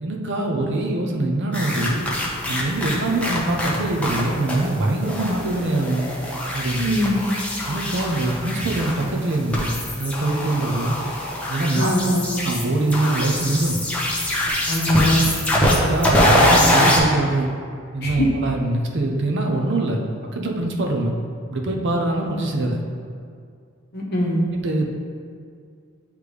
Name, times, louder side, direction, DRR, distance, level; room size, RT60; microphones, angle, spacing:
voice 1, 0.0-2.0 2.5-6.1 6.5-6.9 7.7-9.7 10.0-11.0 11.5-11.9 12.4-13.8 15.6-17.5 17.9-20.0 20.3-21.1 21.5-22.8 24.5-24.8, right 2 dB, 60° right, 2 dB, 0.7 m, -23 dB
sound 1, 1.5-4.2 4.5-4.7 5.0-17.0, left 1 dB, 5° left, 0.8 m, -23 dB
voice 2, 6.8-7.2 11.7-12.3 14.7-15.2 18.0-18.3 23.9-24.4, left 1 dB, 55° left, -3 dB, 1.0 m, -21 dB
9.4 x 3.3 x 3.3 m, 2.2 s
head